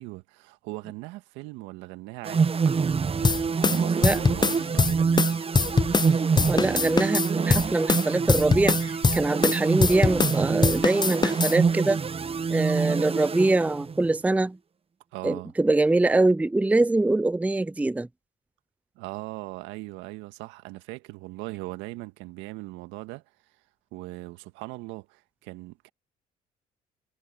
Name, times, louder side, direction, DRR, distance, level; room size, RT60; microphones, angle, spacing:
voice 1, 0.0-5.4 15.1-15.5 19.0-23.2 23.9-25.9, right 20 dB, 80° right, 1.8 m, -39 dB
sound 1, 2.2-14.1, right 5 dB, 30° right, 0.9 m, -26 dB
sound 2, 3.2-6.1 6.4-10.4 10.6-11.6, left 4 dB, 20° left, 0.8 m, -23 dB
voice 2, 6.4-12.0 12.5-14.6 15.2-18.1, right 2 dB, 5° right, 0.5 m, -23 dB
hypercardioid pair, 55°, 19 cm